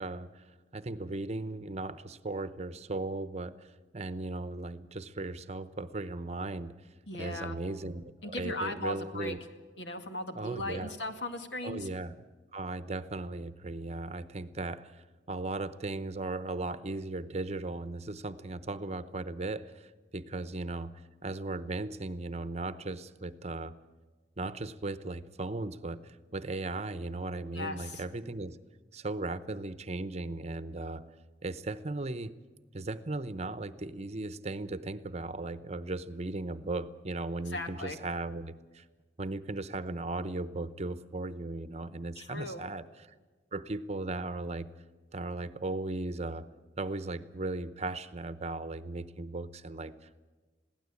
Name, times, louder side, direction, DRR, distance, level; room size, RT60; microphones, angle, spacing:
voice 1, 0.0-6.7 7.2-9.4 10.3-10.9 11.6-12.1 12.5-20.9 21.2-23.8 24.4-28.6 28.9-31.0 31.4-32.3 32.7-38.8 39.2-43.1 43.5-44.7 45.1-46.5 46.8-50.2, right 2 dB, 40° right, 14 dB, 0.8 m, -37 dB
voice 2, 7.1-7.6 8.2-9.4 9.8-11.9 27.5-28.0 37.5-38.0 42.2-42.6, left 1 dB, 80° left, 6 dB, 2.1 m, -37 dB
22.0 x 16.5 x 8.4 m, 1.3 s
head